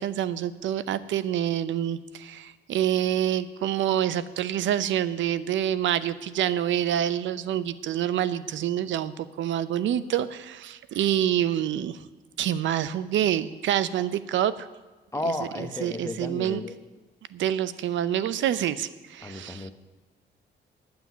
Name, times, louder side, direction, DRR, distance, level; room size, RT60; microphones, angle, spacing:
voice 1, 0.0-12.0 12.4-14.7 15.2-16.6 17.3-19.7, right 11 dB, 70° right, 15 dB, 0.6 m, -27 dB
voice 2, 15.1-16.7 19.2-19.7, left 2 dB, 15° left, 7 dB, 1.0 m, -33 dB
9.6 x 7.9 x 9.3 m, 1.2 s
cardioid pair, 90°, 20 cm